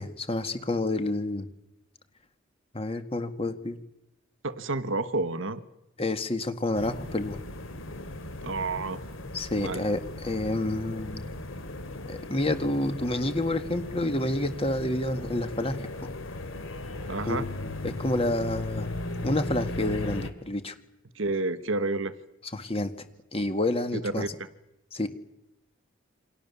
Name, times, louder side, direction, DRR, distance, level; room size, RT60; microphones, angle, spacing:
voice 1, 0.0-1.5 2.7-3.8 6.0-7.4 9.3-11.4 12.1-16.1 17.3-18.9 19.2-20.7 22.5-22.9 23.3-24.3 24.9-25.1, left 1 dB, 25° left, 9 dB, 1.9 m, -29 dB
voice 2, 4.4-5.6 8.4-9.0 9.6-9.8 17.0-17.5 21.1-22.1 23.9-24.5, right 2 dB, 70° right, 13 dB, 1.4 m, -30 dB
sound 1, 6.7-20.3, left 2 dB, 70° left, 2.6 m, -37 dB
29.0 x 25.5 x 7.1 m, 0.88 s
head